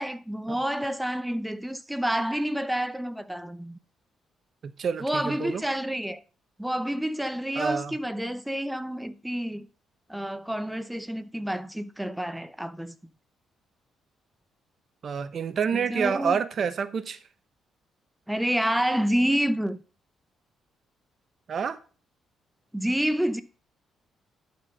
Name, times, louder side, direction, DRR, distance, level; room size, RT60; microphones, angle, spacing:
voice 1, 0.0-3.8 5.0-6.2 6.6-9.7 10.1-12.9 15.7-16.4 18.3-19.8 22.7-23.4, equal, 5° right, 0.7 m, -28 dB
voice 2, 4.6-5.6 7.6-8.0 15.0-17.2 21.5-21.8, right 6 dB, 50° right, 0.8 m, -28 dB
11.0 x 4.5 x 5.3 m
cardioid pair, 90°, 0 cm